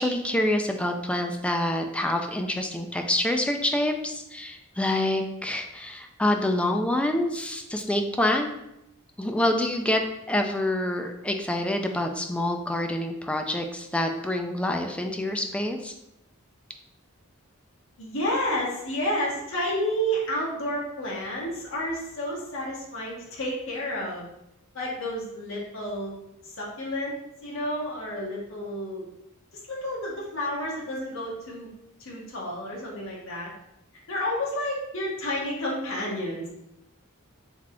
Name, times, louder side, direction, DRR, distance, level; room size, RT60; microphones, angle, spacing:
voice 1, 0.0-8.5 9.2-10.0 10.3-15.9, left 1 dB, 5° left, 4 dB, 0.3 m, -26 dB
voice 2, 18.0-24.3 24.7-26.2 26.4-27.2 27.4-29.1 29.5-31.7 32.0-33.5 34.1-36.5, equal, 65° left, -4 dB, 1.1 m, -30 dB
3.5 x 3.2 x 3.7 m, 0.85 s
head